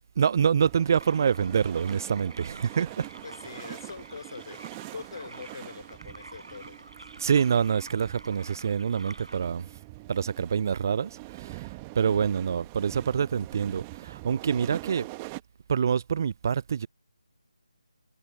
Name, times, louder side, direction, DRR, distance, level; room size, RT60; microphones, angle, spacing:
voice 1, 0.2-3.1 7.2-9.7 10.1-11.7 12.0-15.1 15.7-16.9, right 7 dB, 35° right, 0.3 m, -26 dB
sound 1, 0.6-15.4, right 26 dB, 15° right, 1.6 m, -44 dB
sound 2, 1.0-9.4, right 2 dB, 70° right, 3.8 m, -48 dB
voice 2, 3.2-4.6 4.9-7.1, left 5 dB, 50° left, 3.7 m, -43 dB
figure-of-eight pair, 155°, 3 cm